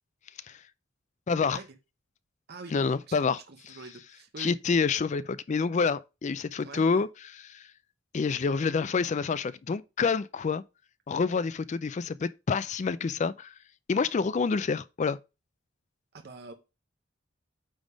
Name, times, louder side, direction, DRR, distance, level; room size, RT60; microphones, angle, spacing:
voice 1, 1.3-1.6 2.7-3.8 4.4-7.6 8.1-10.6 11.1-13.5 13.9-15.2, left 5 dB, 35° left, 0.4 m, -28 dB
voice 2, 2.5-4.5 6.6-7.0 16.1-16.5, right 3 dB, 55° right, 1.0 m, -45 dB
9.0 x 3.5 x 5.0 m
head